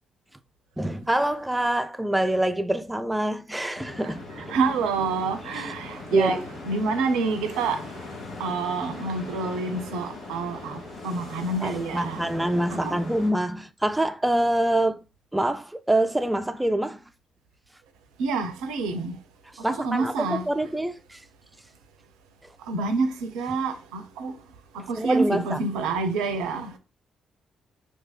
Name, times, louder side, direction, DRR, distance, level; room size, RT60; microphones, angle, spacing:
voice 1, 0.8-4.5 6.1-6.5 11.6-15.0 15.3-17.0 19.6-21.2 24.9-25.6, right 1 dB, 10° right, 0.5 m, -25 dB
sound 1, 3.8-13.3, left 2 dB, 60° left, 0.9 m, -40 dB
voice 2, 4.0-6.4 6.7-8.0 8.4-12.3 12.7-12.9 18.2-19.2 19.7-20.5 22.7-24.3 24.7-26.8, right 4 dB, 75° right, 0.5 m, -28 dB
2.7 x 2.4 x 3.8 m
hypercardioid pair, 40°, 0 cm